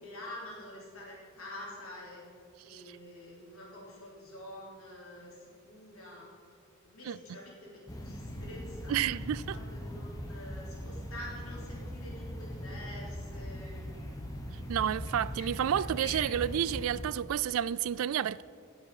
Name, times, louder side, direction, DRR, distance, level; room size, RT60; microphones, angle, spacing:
voice 1, 0.0-2.2 2.6-6.3 6.8-9.0 9.5-13.8, left 1 dB, 75° left, 3.5 m, -47 dB
sound 1, 7.9-17.0, equal, 15° left, 1.0 m, -40 dB
voice 2, 8.9-9.6 14.7-18.4, right 9 dB, 70° right, 0.3 m, -30 dB
17.0 x 7.1 x 4.9 m
head